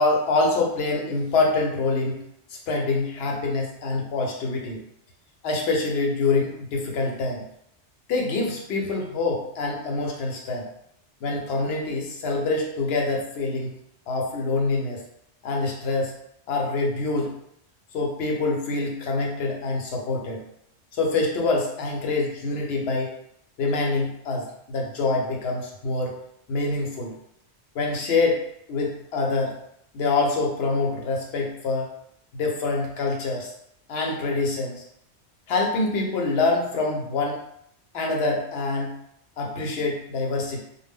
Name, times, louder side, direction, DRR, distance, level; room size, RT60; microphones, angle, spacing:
voice 1, 0.0-2.2 2.5-4.8 5.4-7.4 8.1-10.7 11.2-13.7 14.1-15.0 15.4-16.1 16.5-17.3 17.9-20.4 20.9-23.1 23.6-26.1 26.5-27.1 27.7-29.6 29.9-31.9 32.3-33.5 33.9-34.8 35.5-37.4 37.9-39.0 39.4-40.6, left 3 dB, 70° left, 0 dB, 0.8 m, -25 dB
2.1 x 2.0 x 3.4 m, 0.74 s
omnidirectional pair, 1.1 m